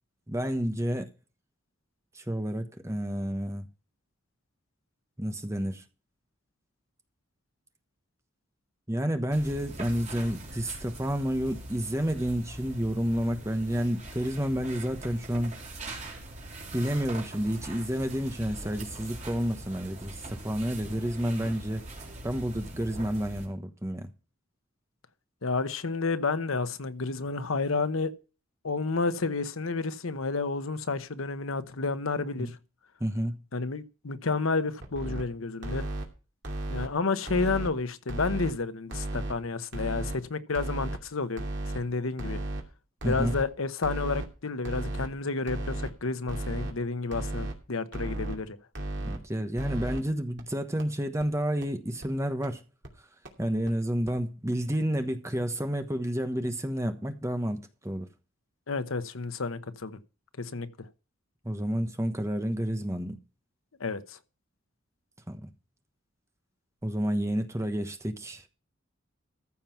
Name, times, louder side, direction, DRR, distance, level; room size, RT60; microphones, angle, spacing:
voice 1, 0.3-1.1 2.1-3.6 5.2-5.8 8.9-15.6 16.7-21.8 22.2-24.1 32.4-32.5 33.0-33.4 43.0-43.4 49.0-52.6 53.4-58.1 61.4-63.2 65.3-65.5 66.8-68.5, equal, 15° right, 1.1 m, -30 dB
sound 1, 9.3-23.5, right 1 dB, 35° right, 4.1 m, -43 dB
voice 2, 25.4-28.1 28.6-32.5 33.5-35.9 36.7-41.4 41.7-42.4 43.0-48.6 58.7-60.0 60.4-60.7 63.8-64.2, left 3 dB, 85° left, 1.0 m, -30 dB
sound 2, 34.8-35.2 35.6-36.1 36.4-36.9 37.3-37.7 38.1-38.5 38.9-39.3 39.7-40.2 40.6-41.0 41.4-41.8 42.2-42.6 43.0-43.4 43.8-44.3 44.7-45.1 45.5-45.9 46.3-46.7 47.1-47.5 47.9-48.4 48.8-49.2 49.6-50.0 50.4-50.5 50.8-50.9 51.2-51.3 51.6-51.7 52.0-52.1 52.4-52.5 52.8-52.9 53.3-53.4 53.7-53.8 54.1-54.2, right 1 dB, 60° right, 2.7 m, -34 dB
14.5 x 5.7 x 5.8 m
head